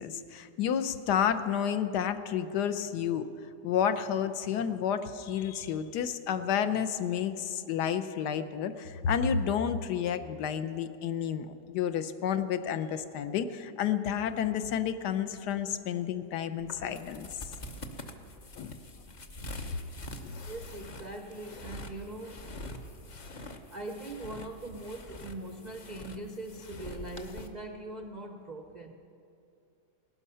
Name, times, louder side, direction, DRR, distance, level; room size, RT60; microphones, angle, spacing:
voice 1, 0.0-3.3 3.6-17.4 18.6-18.8 20.2-20.4, left 8 dB, 70° left, 11 dB, 1.2 m, -30 dB
sound 1, 16.6-27.5, left 1 dB, 40° left, 0.6 m, -45 dB
voice 2, 20.4-22.5 23.7-28.9, right 1 dB, 65° right, 4 dB, 0.4 m, -41 dB
17.5 x 12.0 x 5.6 m, 2.7 s
omnidirectional pair, 1.9 m